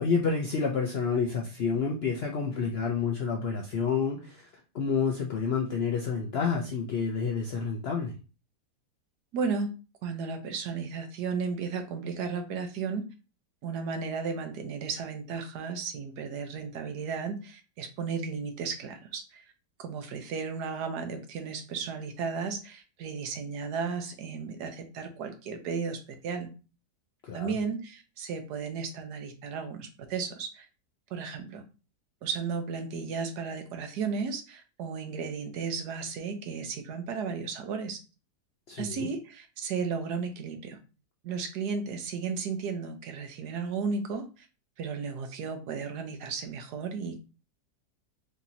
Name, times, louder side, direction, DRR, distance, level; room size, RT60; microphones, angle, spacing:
voice 1, 0.0-4.5 4.7-8.1 27.2-27.6 38.7-39.1, left 5 dB, 80° left, 1 dB, 0.5 m, -29 dB
voice 2, 9.3-9.7 10.0-13.1 13.6-19.4 19.8-26.5 27.3-30.7 31.1-31.6 32.2-38.0 38.8-40.8 41.2-44.5 44.8-47.2, right 5 dB, 75° right, 6 dB, 1.3 m, -34 dB
4.9 x 2.8 x 2.7 m, 0.32 s
omnidirectional pair, 1.8 m